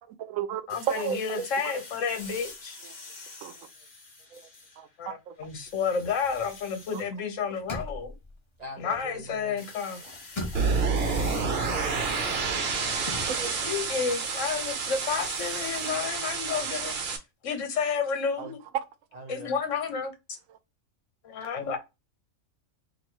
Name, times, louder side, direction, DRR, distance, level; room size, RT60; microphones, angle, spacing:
voice 1, 0.0-1.8 2.8-3.0 3.4-3.5 4.3-4.5 4.8-5.4 6.9-7.0 9.4-10.1 13.3-13.7 15.8-16.1 18.4-18.7 20.5-20.6, right 9 dB, 85° right, 1.0 m, -36 dB
sound 1, 0.7-5.0 5.4-7.1 9.6-15.9, left 3 dB, 55° left, 1.2 m, -47 dB
voice 2, 1.1-2.8 5.0-5.1 5.4-8.1 8.8-10.0 13.6-17.0 17.4-18.6 19.3-20.4 21.2-21.8, left 6 dB, 70° left, 1.2 m, -30 dB
sound 2, 5.4-7.1 7.3-9.6 9.9-13.2, left 1 dB, 25° left, 0.7 m, -41 dB
voice 3, 8.6-9.6 10.7-12.6 19.3-19.5, right 1 dB, 35° right, 1.1 m, -42 dB
sound 3, 10.5-17.2, right 4 dB, 55° right, 0.9 m, -29 dB
3.0 x 2.6 x 4.4 m
omnidirectional pair, 1.4 m